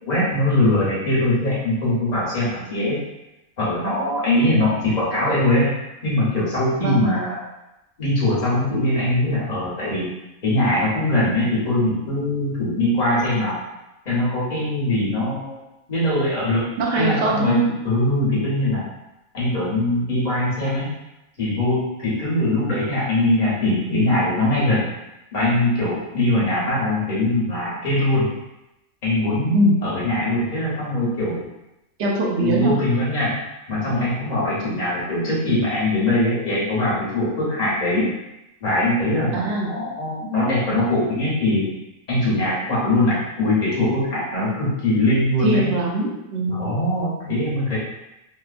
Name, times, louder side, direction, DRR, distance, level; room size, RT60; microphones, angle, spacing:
voice 1, 0.0-3.0 3.6-5.7 6.0-7.4 8.0-10.1 10.4-13.6 14.0-15.5 15.9-16.7 17.0-17.6 17.8-18.8 19.3-20.9 21.4-24.9 25.3-28.3 29.0-31.4 32.4-33.3 33.7-38.1 38.6-41.7 42.1-45.7 46.5-47.8, left 1 dB, 35° left, -7 dB, 1.0 m, -21 dB
voice 2, 16.8-17.7 29.5-29.7 32.0-32.7 39.3-39.7 45.4-46.7, right 1 dB, 65° right, -2 dB, 0.8 m, -21 dB
2.8 x 2.1 x 2.4 m, 0.93 s
omnidirectional pair, 1.4 m